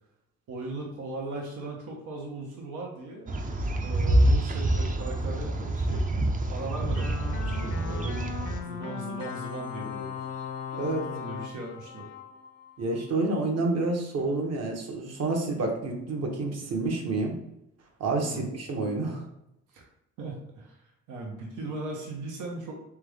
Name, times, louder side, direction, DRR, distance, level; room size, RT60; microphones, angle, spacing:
voice 1, 0.5-3.3 3.8-6.0 6.5-8.2 8.6-10.2 11.1-12.1 16.5-16.6 18.2-18.5 19.7-19.9 20.2-22.7, right 2 dB, 85° right, -1 dB, 1.1 m, -38 dB
sound 1, 3.3-8.6, right 1 dB, 25° right, 0.6 m, -26 dB
sound 2, 7.0-13.1, left 7 dB, 55° left, 0.7 m, -38 dB
voice 2, 10.7-11.1 12.8-17.3 18.0-19.2, right 3 dB, 55° right, 1 dB, 1.1 m, -29 dB
3.5 x 3.5 x 3.5 m, 0.82 s
cardioid pair, 90°, 30 cm